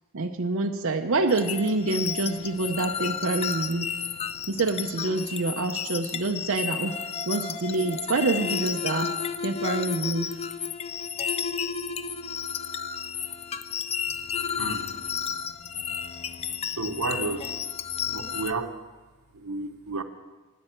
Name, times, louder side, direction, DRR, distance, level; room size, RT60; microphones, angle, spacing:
voice 1, 0.1-3.9 4.5-7.0 7.3-9.1 9.4-10.4, right 3 dB, 60° right, 3 dB, 0.7 m, -27 dB
sound 1, 1.3-18.5, left 7 dB, 30° left, 0.4 m, -32 dB
voice 2, 14.6-14.9 16.6-17.5 18.1-18.7 19.3-20.0, right 3 dB, 90° right, 8 dB, 0.9 m, -32 dB
16.5 x 10.0 x 4.4 m, 1.2 s
head